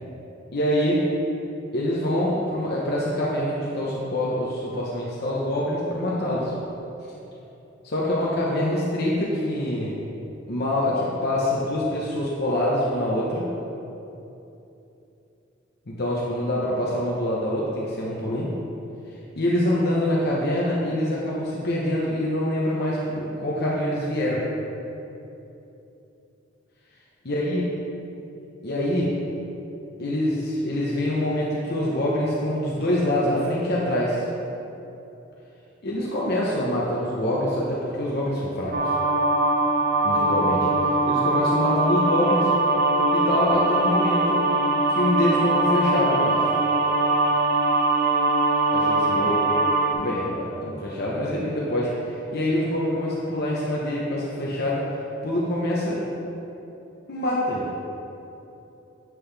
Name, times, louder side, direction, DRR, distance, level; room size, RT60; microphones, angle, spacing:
voice 1, 0.5-1.0 1.7-6.5 7.8-10.0 10.5-13.4 15.9-18.5 19.4-24.4 27.2-27.6 28.6-29.1 30.0-34.2 35.8-38.9 40.0-42.5 43.1-44.4 44.9-46.4 48.7-49.4 49.9-54.9 55.2-56.0 57.1-57.6, left 1 dB, 55° left, -5 dB, 1.0 m, -25 dB
sound 1, 38.7-49.9, right 2 dB, 55° right, 0.7 m, -22 dB
7.7 x 7.5 x 3.4 m, 2.9 s
head